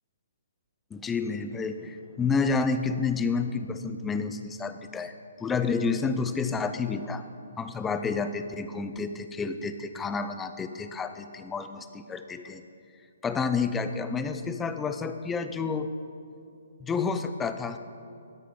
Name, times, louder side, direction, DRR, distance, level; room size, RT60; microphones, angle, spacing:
voice 1, 0.9-7.2 7.6-12.6 13.2-15.9 16.8-17.8, left 4 dB, 10° left, 9 dB, 0.5 m, -30 dB
13.5 x 9.1 x 3.8 m, 2.5 s
hypercardioid pair, 145°, 0 cm